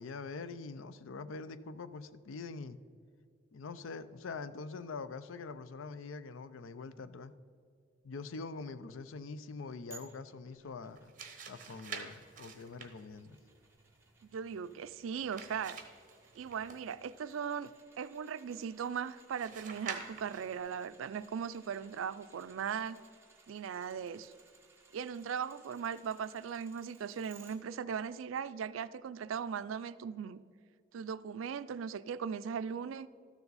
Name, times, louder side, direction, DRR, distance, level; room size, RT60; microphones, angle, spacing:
voice 1, 0.0-2.8 3.5-7.3 8.0-11.1 11.5-13.4, left 4 dB, 90° left, 13 dB, 0.5 m, -44 dB
sound 1, 9.9-27.6 28.0-28.1, right 4 dB, 10° right, 0.9 m, -63 dB
sound 2, 10.8-17.2 19.4-20.6, right 6 dB, 40° right, 1.0 m, -48 dB
voice 2, 14.2-15.8 16.3-17.7 18.0-23.0 23.5-24.3 24.9-30.4 30.9-33.1, right 7 dB, 90° right, 15 dB, 0.4 m, -38 dB
12.5 x 6.9 x 4.0 m, 2.2 s
head